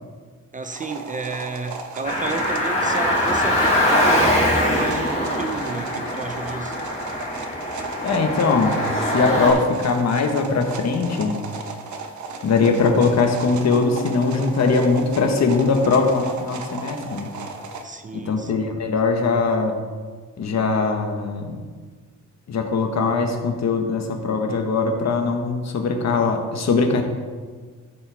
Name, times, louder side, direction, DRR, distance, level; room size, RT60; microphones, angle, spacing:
voice 1, 0.5-6.8 17.8-18.7, right 3 dB, 25° right, 8 dB, 0.5 m, -31 dB
sound 1, 0.6-17.8, right 4 dB, 70° right, 1.0 m, -36 dB
Car, 2.0-9.5, left 1 dB, 20° left, 3.5 m, -22 dB
voice 2, 8.0-11.4 12.4-17.3 18.1-19.7 20.4-21.6 22.5-27.0, left 4 dB, 60° left, 4 dB, 1.4 m, -21 dB
14.5 x 7.7 x 3.5 m, 1.5 s
wide cardioid pair, 150°, 30 cm